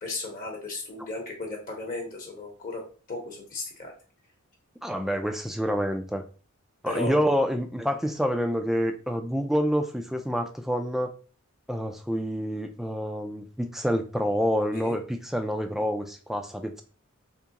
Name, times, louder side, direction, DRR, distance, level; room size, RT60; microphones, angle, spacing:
voice 1, 0.0-2.8 3.1-3.9 6.9-7.3 14.7-14.9 16.6-16.7, left 2 dB, 40° left, 0 dB, 0.9 m, -35 dB
voice 2, 4.8-6.2 6.8-11.1 11.7-16.8, equal, ahead, 6 dB, 0.3 m, -27 dB
3.6 x 3.0 x 2.8 m, 0.37 s
head